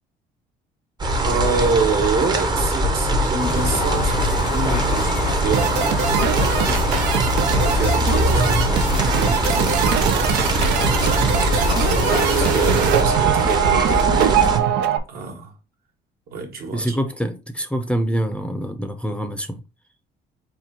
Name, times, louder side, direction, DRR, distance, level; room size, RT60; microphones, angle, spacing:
sound 1, 1.0-14.6, right 1 dB, 25° right, 0.8 m, -22 dB
voice 1, 1.2-6.6 7.5-10.2 11.0-14.7 15.1-15.5 16.3-17.0, right 4 dB, 65° right, 1.4 m, -27 dB
sound 2, 3.4-12.9, left 6 dB, 85° left, 0.8 m, -29 dB
sound 3, 5.5-15.0, right 9 dB, 85° right, 0.6 m, -21 dB
voice 2, 16.7-19.6, right 1 dB, 5° left, 0.6 m, -25 dB
4.4 x 2.4 x 4.2 m
cardioid pair, 110°, 17 cm